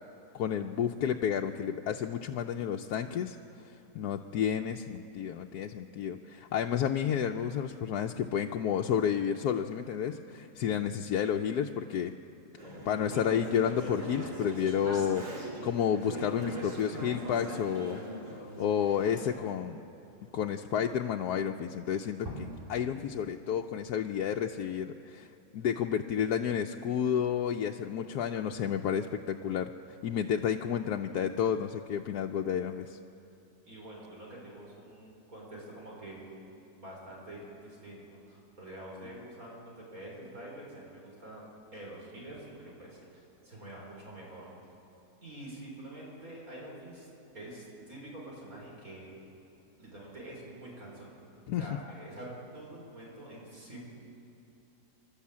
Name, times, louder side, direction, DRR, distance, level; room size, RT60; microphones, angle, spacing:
voice 1, 0.3-3.4 3.9-12.1 12.8-15.3 15.6-18.0 18.3-19.8 20.3-29.7 30.0-33.0 51.5-51.7, left 8 dB, 85° left, 3 dB, 1.2 m, -31 dB
Conversation / Chatter, 12.6-19.3, right 1 dB, 85° right, 3.6 m, -41 dB
sound 1, 16.3-22.6, equal, 15° right, 3.0 m, -51 dB
voice 2, 33.6-36.2 36.7-41.5 41.7-44.5 45.2-47.1 47.3-49.1 49.8-51.1 51.5-52.3 52.5-53.8, right 1 dB, 60° right, -4 dB, 5.0 m, -46 dB
26.5 x 12.5 x 8.6 m, 2.8 s
omnidirectional pair, 1.7 m